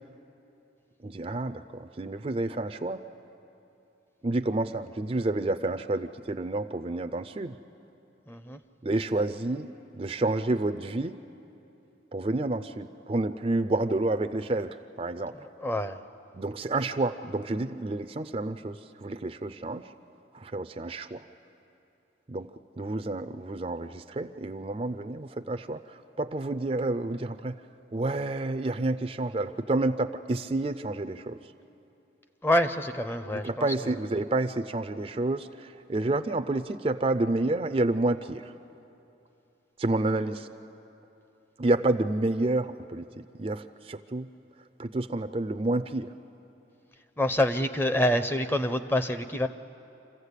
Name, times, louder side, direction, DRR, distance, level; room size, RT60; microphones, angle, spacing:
voice 1, 1.0-3.0 4.2-7.5 8.8-11.1 12.1-15.4 16.3-19.8 20.3-21.2 22.3-22.5 22.8-25.8 26.2-27.5 27.9-31.4 33.3-38.4 39.8-40.5 41.6-44.3 44.8-46.1, right 2 dB, 30° right, 10 dB, 0.4 m, -29 dB
voice 2, 8.3-8.6 15.6-16.0 32.4-33.7 47.2-49.5, left 1 dB, 10° left, 9 dB, 0.6 m, -26 dB
27.0 x 15.0 x 8.2 m, 2.8 s
head